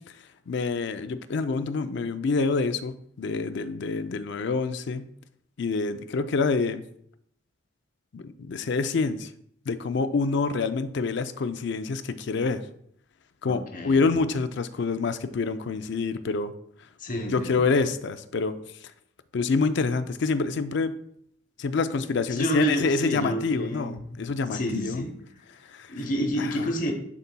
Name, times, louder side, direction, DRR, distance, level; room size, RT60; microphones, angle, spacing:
voice 1, 0.5-5.1 5.6-6.8 8.1-9.3 9.7-12.6 13.4-16.5 17.3-18.5 18.8-18.9 19.3-20.9 21.6-25.1 25.7-26.0 26.4-26.7, left 4 dB, 60° left, 11 dB, 0.4 m, -27 dB
voice 2, 13.5-14.0 17.0-17.8 22.3-24.2 24.5-25.1 25.9-26.9, equal, 40° left, 3 dB, 0.9 m, -29 dB
11.0 x 4.0 x 2.2 m, 0.69 s
head